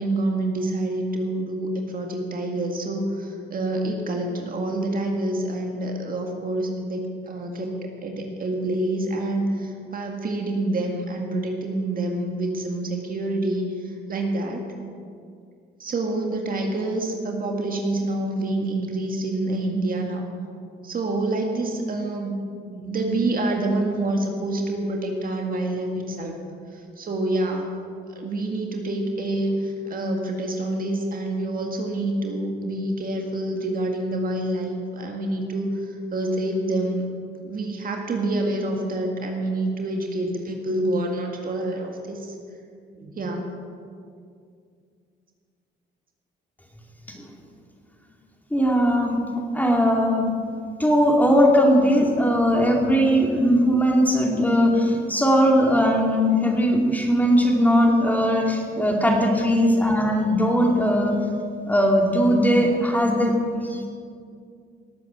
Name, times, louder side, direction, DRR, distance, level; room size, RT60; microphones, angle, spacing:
voice 1, 0.0-7.7 8.0-13.7 14.1-14.6 15.8-20.2 20.8-26.3 27.0-27.7 28.2-35.7 36.1-37.0 37.4-42.3 42.9-43.5, right 2 dB, 45° right, 2 dB, 1.9 m, -27 dB
voice 2, 48.5-49.2 49.5-50.3 50.8-61.2 61.6-63.3 63.7-63.8, equal, 10° left, 0 dB, 2.7 m, -19 dB
18.5 x 8.4 x 6.3 m, 2.3 s
cardioid pair, 90°, 20 cm